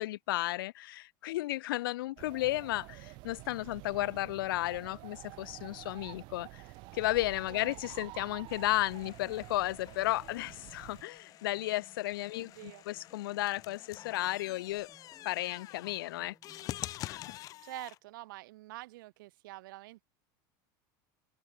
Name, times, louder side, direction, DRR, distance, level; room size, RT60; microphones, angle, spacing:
voice 1, 0.0-6.6 6.9-14.9 15.2-16.3 17.1-17.4, left 17 dB, 90° left, 1.4 m, -34 dB
sound 1, 2.2-11.0, right 26 dB, 40° right, 1.1 m, -49 dB
sound 2, 4.7-17.5, equal, ahead, 5.4 m, -65 dB
sound 3, 8.5-18.0, left 15 dB, 30° left, 6.8 m, -47 dB
voice 2, 12.3-12.8 17.6-20.0, right 19 dB, 70° right, 3.5 m, -46 dB
supercardioid pair, 175°, 11 cm